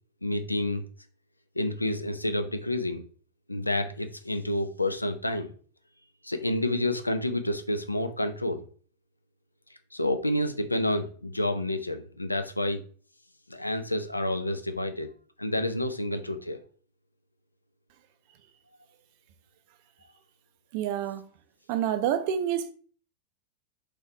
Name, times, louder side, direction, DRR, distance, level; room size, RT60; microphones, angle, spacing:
voice 1, 0.2-0.8 1.6-3.1 3.5-5.5 6.2-8.7 9.9-12.8 13.5-15.1 15.4-16.6, left 1 dB, 85° left, 0.3 m, -29 dB
voice 2, 20.7-21.3 21.7-22.7, right 9 dB, 45° right, 0.4 m, -28 dB
3.2 x 3.0 x 2.6 m
figure-of-eight pair, 90°, 0 cm